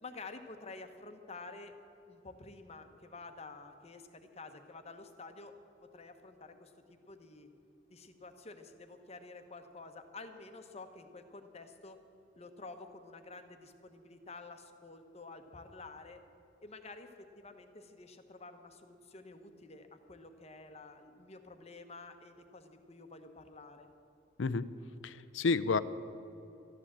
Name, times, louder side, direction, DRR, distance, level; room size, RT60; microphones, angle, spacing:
voice 1, 0.0-1.7 2.1-5.5 5.9-6.7 7.1-7.5 7.9-12.0 12.4-16.2 16.6-23.9, left 3 dB, 35° left, 7 dB, 0.9 m, -50 dB
voice 2, 25.0-25.8, left 4 dB, 75° left, 14 dB, 0.5 m, -30 dB
13.0 x 11.0 x 7.4 m, 2.8 s
head